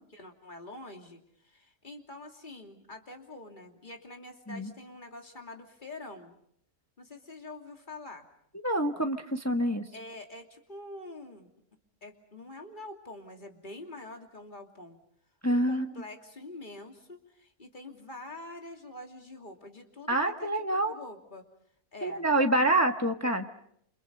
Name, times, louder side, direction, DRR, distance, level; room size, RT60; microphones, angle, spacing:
voice 1, 0.1-6.3 7.0-8.3 9.9-11.5 12.0-15.0 15.5-21.5 21.9-22.2, left 2 dB, 30° left, 3 dB, 3.0 m, -46 dB
voice 2, 8.6-9.9 15.4-15.9 20.1-20.9 22.0-23.4, right 1 dB, 10° left, 5 dB, 1.2 m, -26 dB
29.0 x 27.5 x 5.5 m, 0.70 s
omnidirectional pair, 1.6 m